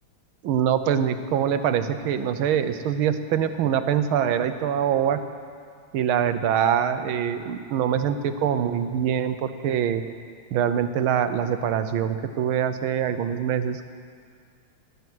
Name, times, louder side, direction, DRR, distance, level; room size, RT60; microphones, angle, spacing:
voice 1, 0.4-5.2 5.9-10.0 10.5-13.9, right 9 dB, 85° right, 10 dB, 1.6 m, -24 dB
20.5 x 9.6 x 6.2 m, 2.1 s
omnidirectional pair, 2.2 m